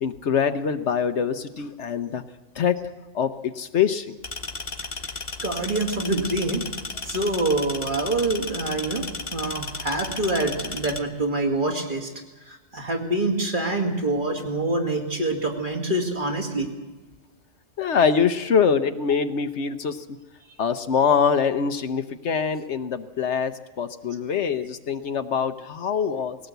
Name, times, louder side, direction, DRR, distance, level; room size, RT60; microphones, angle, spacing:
voice 1, 0.0-2.2 2.6-2.8 3.1-4.1 17.8-20.0 20.6-26.4, left 6 dB, 65° left, 10 dB, 1.1 m, -24 dB
sound 1, 4.2-11.0, left 3 dB, 35° left, 1.3 m, -34 dB
voice 2, 5.4-6.6 7.0-12.1 12.5-16.7, right 2 dB, 40° right, 2 dB, 2.6 m, -26 dB
19.5 x 17.0 x 8.0 m, 1.2 s
omnidirectional pair, 1.3 m